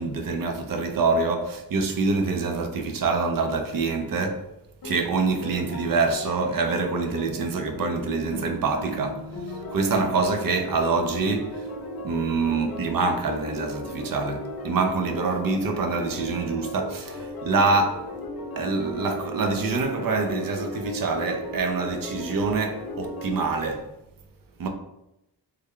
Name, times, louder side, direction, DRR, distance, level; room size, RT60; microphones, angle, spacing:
voice 1, 0.0-4.4 4.8-9.2 9.7-11.6 12.0-18.1 18.6-23.9 24.6-24.7, right 4 dB, 55° right, 0.5 m, -25 dB
sound 1, 4.8-23.5, left 1 dB, 55° left, 0.6 m, -36 dB
3.2 x 2.2 x 3.5 m
wide cardioid pair, 170°, 42 cm